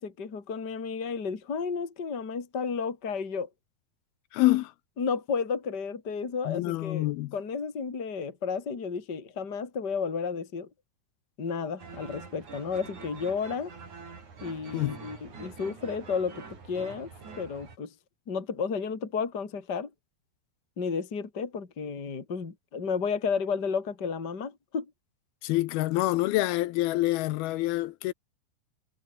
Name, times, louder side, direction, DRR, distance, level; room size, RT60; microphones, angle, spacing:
voice 1, 0.0-3.5 5.0-10.7 11.4-13.7 14.4-17.9 18.3-19.9 20.8-24.8, left 5 dB, 25° left, 3.2 m, -32 dB
voice 2, 4.3-4.7 6.5-7.3 14.7-15.0 25.4-28.1, left 17 dB, 75° left, 2.3 m, -26 dB
sound 1, 11.8-17.8, right 5 dB, 45° right, 6.0 m, -45 dB
omnidirectional pair, 5.0 m